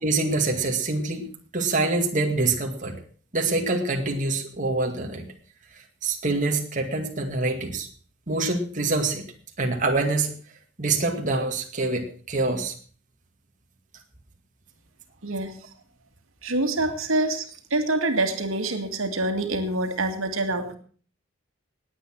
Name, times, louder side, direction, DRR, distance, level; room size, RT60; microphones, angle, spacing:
voice 1, 0.0-1.3 1.5-2.9 3.3-5.2 5.7-7.9 8.3-9.2 9.6-10.3 10.8-12.7, right 3 dB, 40° right, 2 dB, 2.2 m, -25 dB
voice 2, 15.2-15.6 16.4-20.8, right 2 dB, 90° right, 6 dB, 2.2 m, -26 dB
19.0 x 8.4 x 6.2 m, 0.43 s
head